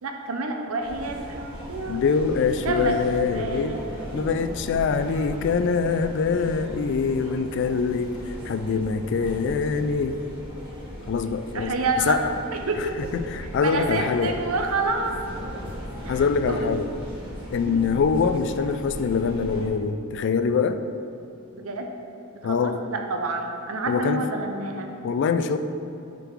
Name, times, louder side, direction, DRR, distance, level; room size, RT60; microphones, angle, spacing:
voice 1, 0.0-2.1 2.4-3.0 3.3-4.3 11.5-12.2 12.5-13.1 13.4-15.1 16.0-16.2 16.5-16.7 17.6-17.9 21.5-21.9 22.4-24.9, right 3 dB, 75° right, 3 dB, 0.6 m, -29 dB
sound 1, 0.8-19.7, equal, 25° right, 1.5 m, -38 dB
voice 2, 1.9-3.8 4.1-10.2 11.1-11.7 12.1-12.3 12.8-12.9 13.1-14.4 16.1-16.9 17.5-20.8 22.4-22.8 23.9-24.2 25.0-25.6, left 5 dB, 55° left, 9 dB, 0.3 m, -24 dB
6.7 x 3.8 x 4.6 m, 2.8 s
head